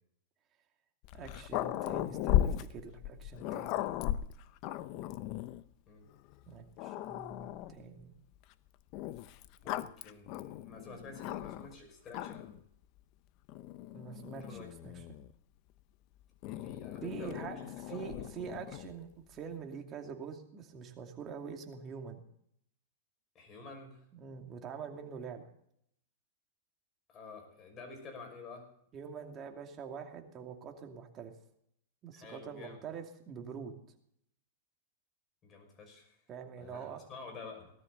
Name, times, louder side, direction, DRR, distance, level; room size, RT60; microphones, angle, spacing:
Growling, 1.0-5.6 6.3-6.4 6.8-7.8 8.9-11.7 12.1-12.6 13.5-15.3 16.4-19.0, left 13 dB, 45° left, 0.7 m, -37 dB
voice 1, 1.1-3.9 6.5-8.1 13.9-15.0 17.0-17.6 17.9-22.2 24.1-25.5 28.9-31.3 32.0-33.8 36.3-37.0, right 6 dB, 30° right, 3 dB, 2.6 m, -45 dB
voice 2, 9.6-12.6 14.3-14.7 16.4-18.3 23.3-24.0 27.1-28.7 32.1-32.8 35.4-36.2 36.6-37.7, left 4 dB, 25° left, 2 dB, 5.9 m, -49 dB
18.5 x 13.0 x 4.0 m, 0.71 s
hypercardioid pair, 135°, 0 cm